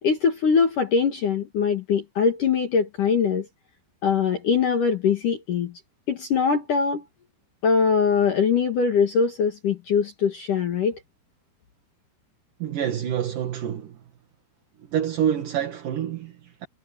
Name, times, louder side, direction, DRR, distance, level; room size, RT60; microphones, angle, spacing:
voice 1, 0.0-3.5 4.0-5.7 6.1-7.0 7.6-11.0, left 6 dB, 55° left, 2.5 m, -22 dB
voice 2, 12.6-14.0 14.9-16.7, right 9 dB, 55° right, 2.7 m, -27 dB
omnidirectional pair, 5.9 m